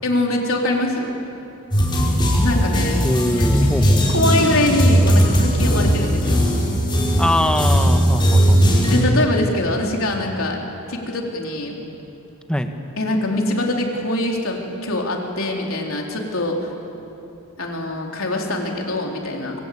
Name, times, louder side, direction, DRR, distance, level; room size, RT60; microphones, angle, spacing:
voice 1, 0.0-1.1 2.4-3.7 4.1-6.4 8.8-10.6 10.9-11.8 13.0-16.7 17.6-19.5, left 1 dB, 65° left, 0 dB, 4.1 m, -23 dB
sound 1, 1.7-9.0, equal, 20° left, 4.5 m, -17 dB
voice 2, 3.0-4.0 7.2-8.6 12.5-12.7, left 1 dB, 5° left, 5 dB, 1.4 m, -22 dB
26.0 x 23.5 x 8.7 m, 2.9 s
head